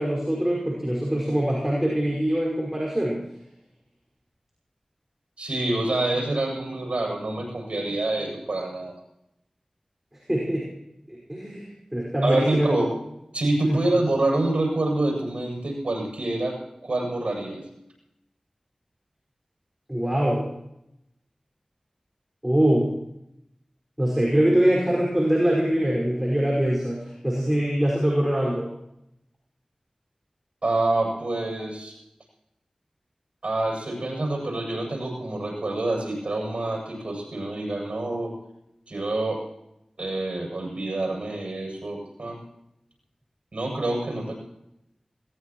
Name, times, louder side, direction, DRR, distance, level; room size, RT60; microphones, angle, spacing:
voice 1, 0.0-3.2 10.3-10.7 11.1-12.7 13.6-13.8 19.9-20.5 22.4-22.9 24.0-28.7, right 1 dB, 15° right, -4 dB, 5.5 m, -23 dB
voice 2, 5.4-9.0 12.2-13.0 13.3-17.6 30.6-31.9 33.4-38.3 38.9-39.4 40.0-42.4 43.5-44.3, right 2 dB, 70° right, 0 dB, 7.8 m, -27 dB
21.5 x 19.0 x 3.1 m, 0.83 s
wide cardioid pair, 40°, 2 cm